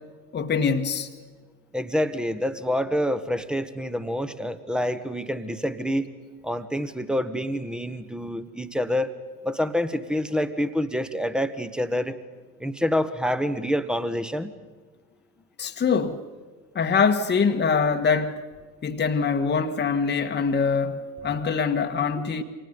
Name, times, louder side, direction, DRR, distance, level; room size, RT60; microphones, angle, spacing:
voice 1, 0.3-1.1 15.6-16.2 16.7-18.4 18.8-22.4, left 5 dB, 20° left, 1.6 m, -23 dB
voice 2, 1.7-6.1 6.4-9.1 9.4-12.2 12.6-14.5, equal, ahead, 1.4 m, -27 dB
29.0 x 25.5 x 5.3 m
figure-of-eight pair, 70°, 48 cm